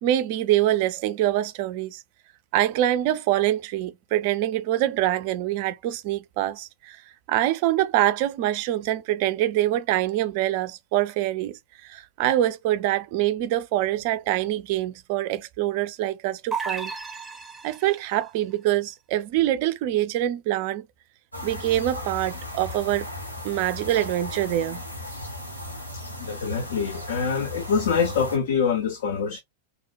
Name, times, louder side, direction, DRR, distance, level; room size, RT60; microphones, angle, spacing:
voice 1, 0.0-2.0 2.5-7.0 7.3-16.9 17.6-20.9 21.4-23.1 23.4-24.8, right 13 dB, 45° right, 0.3 m, -25 dB
sound 1, 16.5-18.1, right 5 dB, 10° right, 0.6 m, -33 dB
sound 2, 21.3-28.4, left 1 dB, 90° left, 0.9 m, -36 dB
voice 2, 26.2-29.4, left 6 dB, 60° left, 0.4 m, -25 dB
2.6 x 2.1 x 2.4 m
figure-of-eight pair, 90°, 0 cm